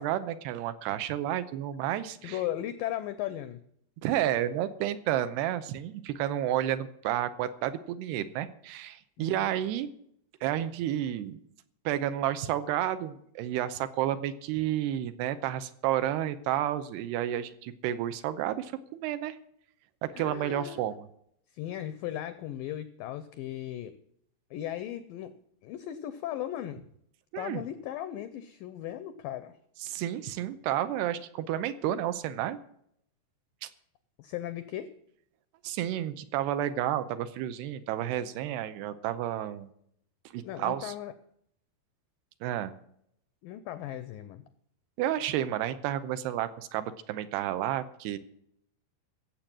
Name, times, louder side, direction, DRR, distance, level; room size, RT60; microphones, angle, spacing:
voice 1, 0.0-2.4 4.0-9.9 10.4-11.4 11.9-19.4 20.0-21.1 27.3-27.6 29.8-32.6 33.6-33.7 35.6-39.7 40.3-40.9 42.4-42.8 45.0-48.2, right 12 dB, 80° right, 12 dB, 2.7 m, -31 dB
voice 2, 2.2-3.6 9.2-9.6 20.1-20.8 21.5-24.0 24.5-25.3 25.6-26.8 27.4-29.6 34.2-34.9 40.4-41.1 43.4-44.4, left 12 dB, 85° left, 12 dB, 2.0 m, -37 dB
15.5 x 7.7 x 7.4 m, 0.71 s
omnidirectional pair, 4.8 m